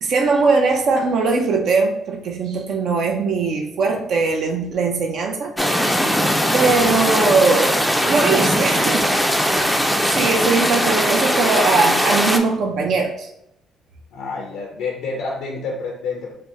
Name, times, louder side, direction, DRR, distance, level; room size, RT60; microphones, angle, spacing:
voice 1, 0.0-5.5 6.1-9.2 9.5-13.3, right 4 dB, 65° right, 1 dB, 0.5 m, -20 dB
sound 1, 5.6-12.4, equal, ahead, 0.4 m, -19 dB
voice 2, 6.2-6.9 14.1-16.3, left 4 dB, 85° left, -1 dB, 0.5 m, -29 dB
2.9 x 2.0 x 3.5 m, 0.79 s
cardioid pair, 80°, 0 cm